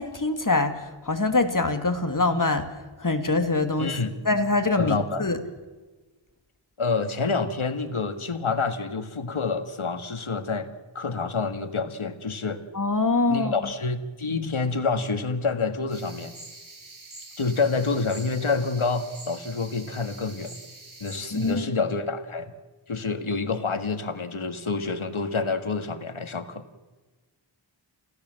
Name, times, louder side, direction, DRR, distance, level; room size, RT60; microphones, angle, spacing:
voice 1, 0.0-2.7 3.0-4.0 4.2-5.4 12.7-13.7 21.3-21.7, left 3 dB, 40° left, 7 dB, 2.8 m, -24 dB
voice 2, 3.8-4.1 4.8-5.2 6.8-10.7 11.0-12.6 13.3-16.3 17.4-20.6 21.0-22.5 22.9-26.6, left 4 dB, 90° left, 9 dB, 1.8 m, -28 dB
sound 1, 15.9-21.5, right 2 dB, 85° right, 8.0 m, -45 dB
28.0 x 17.0 x 7.7 m, 1.3 s
wide cardioid pair, 50°, 48 cm